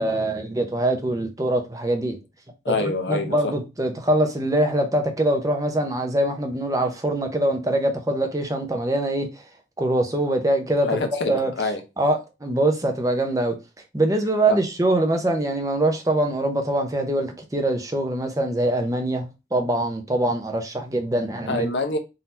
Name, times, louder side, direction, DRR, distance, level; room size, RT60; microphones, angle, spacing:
voice 1, 0.0-2.2 2.7-9.3 9.8-11.0 11.3-11.5 12.0-13.5 13.9-21.7, right 1 dB, 20° right, 0.7 m, -23 dB
voice 2, 2.6-3.5 10.9-11.8 14.5-14.6 21.5-22.0, left 3 dB, 80° left, 0.9 m, -25 dB
3.9 x 2.8 x 4.3 m
head